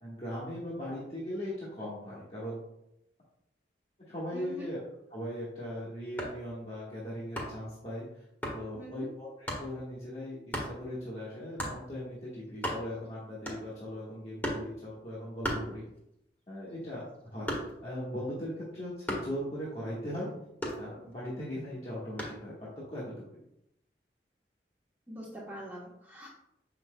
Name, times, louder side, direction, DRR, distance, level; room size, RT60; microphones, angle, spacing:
voice 1, 0.0-2.6 4.1-4.8 5.1-8.2 8.5-15.8 16.5-17.5 17.8-20.3 20.8-23.1, equal, 35° left, -8 dB, 1.5 m, -39 dB
voice 2, 4.3-4.7 8.7-9.1 25.1-26.3, right 1 dB, 10° right, -6 dB, 1.1 m, -43 dB
sound 1, 6.2-6.5 7.4-7.7 8.4-8.6 9.5-9.7 10.5-10.8 11.6-11.8 12.3-12.4 12.5-13.1 13.5-13.9 14.4-14.7 15.4-16.2 16.6-17.9 19.1-19.4 20.6-21.3 22.2-22.5, equal, 10° left, 1.3 m, -36 dB
7.5 x 5.8 x 2.2 m, 0.82 s
head